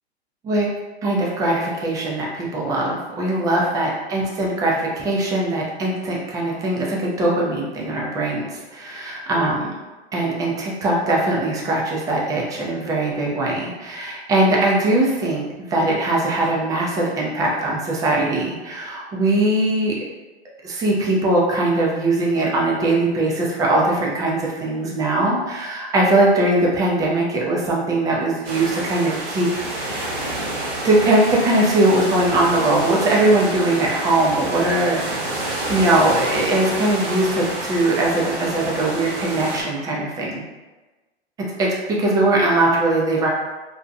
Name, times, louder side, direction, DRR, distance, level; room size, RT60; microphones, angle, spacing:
voice 1, 1.0-8.5 8.7-9.7 10.1-20.0 20.6-30.4 30.8-35.2 35.7-40.4 41.6-43.3, right 2 dB, 10° right, -3 dB, 0.4 m, -21 dB
sound 1, 28.4-39.6, right 1 dB, 65° right, 0.9 m, -28 dB
2.6 x 2.1 x 2.5 m, 1.2 s
hypercardioid pair, 110°, 33 cm